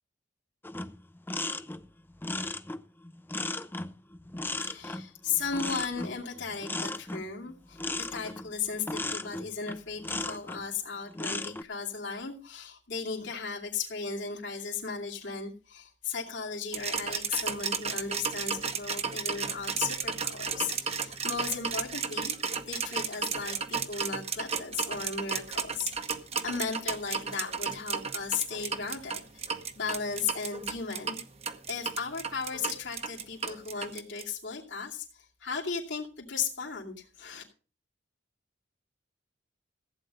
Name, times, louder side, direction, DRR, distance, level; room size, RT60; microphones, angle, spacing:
sound 1, 0.6-10.6 11.1-11.6, left 2 dB, 10° left, 0.5 m, -36 dB
voice 1, 4.6-22.4 22.7-31.2 31.7-37.4, left 5 dB, 75° left, -2 dB, 2.6 m, -36 dB
sound 2, 16.7-34.2, right 6 dB, 35° right, 1.1 m, -33 dB
15.5 x 8.9 x 5.4 m, 0.37 s
head